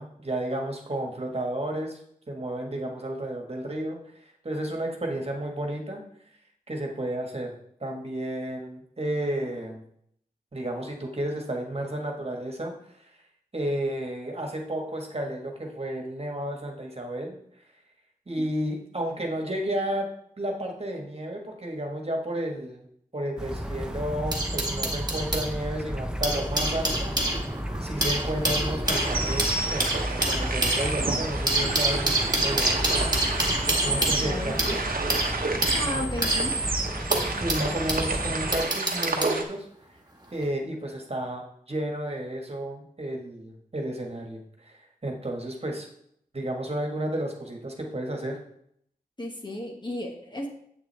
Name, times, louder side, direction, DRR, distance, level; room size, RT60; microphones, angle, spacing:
voice 1, 0.0-2.0 2.3-6.0 6.7-7.5 7.8-9.8 10.5-12.7 13.0-13.1 13.5-17.4 18.3-20.1 20.4-22.9 23.1-27.1 27.8-32.8 33.6-34.8 35.9-36.0 37.4-39.7 40.3-45.9 46.3-48.4, right 1 dB, 40° right, 1 dB, 1.6 m, -32 dB
sound 1, 23.4-38.7, equal, 5° right, 0.7 m, -33 dB
sound 2, 23.4-25.5 26.0-38.1 38.5-39.4 40.3-40.5, right 1 dB, 25° right, 1.7 m, -28 dB
sound 3, 28.8-39.4, right 3 dB, 70° right, 1.0 m, -30 dB
voice 2, 33.8-34.6 35.7-36.6 49.2-50.5, left 1 dB, 30° left, 1 dB, 1.6 m, -34 dB
7.9 x 7.2 x 3.4 m, 0.69 s
wide cardioid pair, 50°, 15 cm